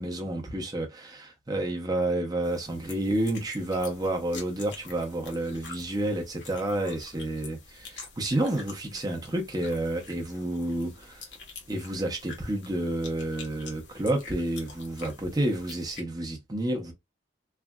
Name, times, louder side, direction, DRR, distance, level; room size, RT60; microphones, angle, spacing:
voice 1, 0.0-11.2 11.7-16.9, right 1 dB, 20° right, 0.9 m, -30 dB
sound 1, 2.4-16.0, left 4 dB, 65° left, 1.1 m, -47 dB
3.3 x 2.5 x 2.3 m
head